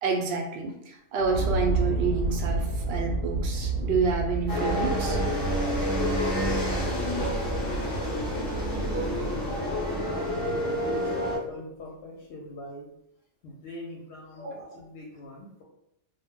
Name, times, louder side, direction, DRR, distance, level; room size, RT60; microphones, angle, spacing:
voice 1, 0.0-5.2 7.1-7.7 14.4-14.8, right 4 dB, 65° right, 2 dB, 0.7 m, -29 dB
sound 1, 1.2-10.8, right 2 dB, 85° right, 1.0 m, -31 dB
sound 2, 4.5-11.4, left 1 dB, 30° left, 0.4 m, -29 dB
voice 2, 10.0-12.9 13.4-15.6, left 1 dB, 70° left, -2 dB, 0.8 m, -42 dB
2.2 x 2.0 x 3.5 m, 0.79 s
omnidirectional pair, 1.3 m